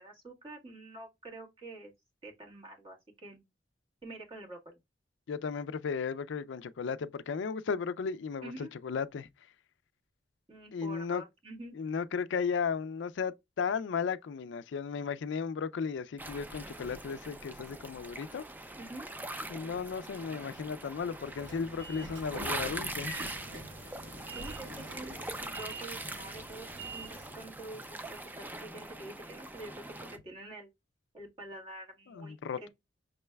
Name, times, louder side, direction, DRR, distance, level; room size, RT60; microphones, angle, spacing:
voice 1, 0.0-1.9 2.2-3.5 4.0-4.7 8.4-8.7 10.5-11.8 18.7-19.1 24.3-26.7 26.9-30.7 31.1-32.7, right 2 dB, 30° right, 1.6 m, -47 dB
voice 2, 5.3-9.3 10.7-11.2 11.8-18.4 19.5-23.1 32.1-32.7, left 6 dB, 70° left, 0.4 m, -35 dB
sound 1, 16.2-30.2, right 2 dB, 10° right, 0.4 m, -42 dB
Train / Sliding door, 21.0-27.4, right 2 dB, 75° right, 1.3 m, -45 dB
6.0 x 3.2 x 2.2 m
head